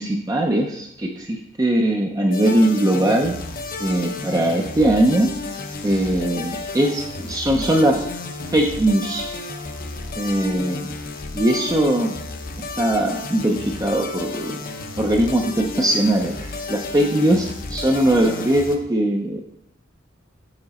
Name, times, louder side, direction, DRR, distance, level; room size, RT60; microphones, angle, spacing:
voice 1, 0.0-3.4 3.8-5.3 5.8-8.0 8.5-9.3 10.2-10.9 11.3-12.2 12.6-14.6 15.0-19.4, right 1 dB, 20° right, 1 dB, 0.5 m, -20 dB
sound 1, 2.3-18.8, left 3 dB, 45° left, 0.6 m, -32 dB
6.9 x 3.8 x 4.2 m, 0.77 s
head